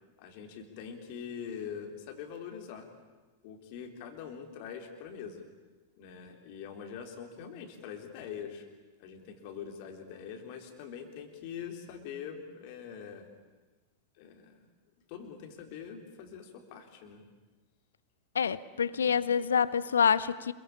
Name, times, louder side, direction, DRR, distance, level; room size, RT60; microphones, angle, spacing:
voice 1, 0.2-2.9 3.4-5.4 6.0-8.7 9.0-13.3 14.2-14.7 15.1-17.2 19.0-19.3, left 7 dB, 45° left, 3.7 m, -43 dB
voice 2, 18.3-20.5, left 7 dB, 70° left, 0.8 m, -27 dB
27.0 x 23.0 x 8.7 m
figure-of-eight pair, 90°, 0 cm